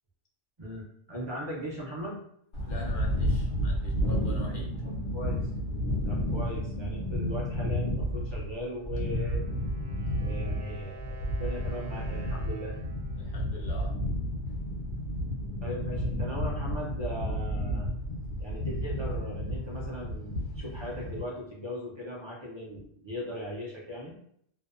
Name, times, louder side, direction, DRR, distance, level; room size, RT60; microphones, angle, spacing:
voice 1, 0.6-2.2 4.8-5.4 6.0-9.4 10.2-12.7 15.6-17.9 18.4-24.1, equal, 35° right, -5 dB, 0.4 m, -38 dB
sound 1, 2.5-21.2, equal, 80° left, 1.0 m, -31 dB
voice 2, 2.7-4.7 13.2-13.9, left 2 dB, 60° left, -3 dB, 0.6 m, -44 dB
Wind instrument woodwind instrument, 8.9-14.7, right 1 dB, 85° right, 0.9 m, -50 dB
2.6 x 2.1 x 2.4 m, 0.69 s
omnidirectional pair, 1.1 m